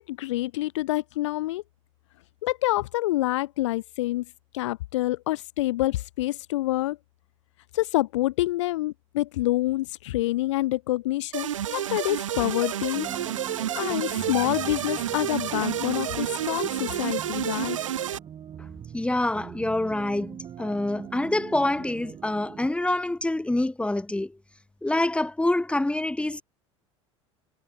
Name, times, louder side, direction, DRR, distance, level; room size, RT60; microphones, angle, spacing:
voice 1, 0.0-1.6 2.4-4.3 4.5-7.0 7.7-13.1 13.7-17.8, left 17 dB, 60° left, 1.1 m, -27 dB
sound 1, 11.3-18.2, right 11 dB, 70° right, 3.8 m, -30 dB
sound 2, 12.9-22.7, right 9 dB, 35° right, 5.5 m, -42 dB
voice 2, 18.9-24.4 24.8-26.4, left 2 dB, 5° left, 3.2 m, -26 dB
figure-of-eight pair, 70°, 17 cm